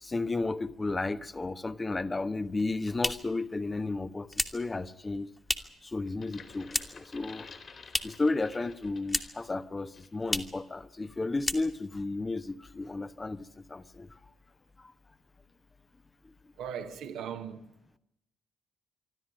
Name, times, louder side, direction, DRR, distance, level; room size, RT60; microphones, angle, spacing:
voice 1, 0.0-5.3 5.8-7.5 8.0-14.1, left 3 dB, 25° left, 1.1 m, -33 dB
sound 1, 2.4-5.9 6.2-7.1 7.4-8.3 8.6-9.5 9.8-9.9 10.2-10.6 11.0-11.1 11.4-12.0, left 1 dB, 10° left, 1.8 m, -34 dB
sound 2, 6.1-9.5 9.9-10.2, left 5 dB, 50° left, 3.1 m, -51 dB
voice 2, 16.6-17.7, right 8 dB, 65° right, 1.6 m, -38 dB
25.5 x 13.0 x 9.5 m
figure-of-eight pair, 45°, 0 cm